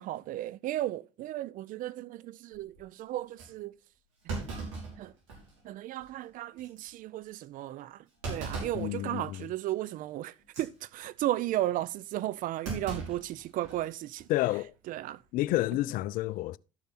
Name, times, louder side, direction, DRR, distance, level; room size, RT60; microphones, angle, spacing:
voice 1, 0.0-3.7 4.3-4.4 5.0-5.1 5.6-8.0 8.3-14.2 14.9-15.2, right 14 dB, 55° right, 0.6 m, -35 dB
Thump thud, 2.5-2.8 3.4-3.5 4.3-5.6 6.0-6.1 6.6-6.8 8.2-8.9 9.3-9.6 10.4-10.7 12.6-13.9 14.2-14.3 15.4-15.7, right 3 dB, 80° right, 5.3 m, -38 dB
voice 2, 8.7-9.5 14.3-14.7 15.3-16.6, left 16 dB, 55° left, 0.4 m, -30 dB
12.5 x 6.8 x 4.1 m
hypercardioid pair, 60°, 17 cm